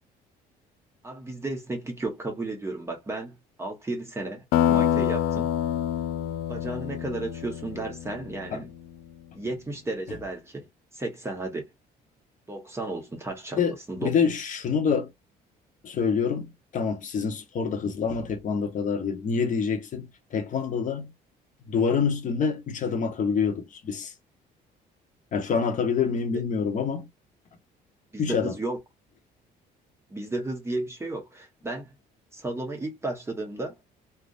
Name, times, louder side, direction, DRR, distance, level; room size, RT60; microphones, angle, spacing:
voice 1, 1.0-5.5 6.5-8.7 9.3-10.7 10.9-11.7 12.5-13.6 13.9-14.1 28.1-28.8 30.1-31.9 32.3-33.8, right 2 dB, 15° right, 1.3 m, -33 dB
sound 1, 4.5-8.8, left 11 dB, 85° left, 0.4 m, -27 dB
voice 2, 13.6-15.1 15.8-21.1 21.7-24.1 25.3-27.1 28.2-28.5, left 6 dB, 50° left, 1.1 m, -26 dB
3.5 x 2.4 x 2.6 m
cardioid pair, 110°, 17 cm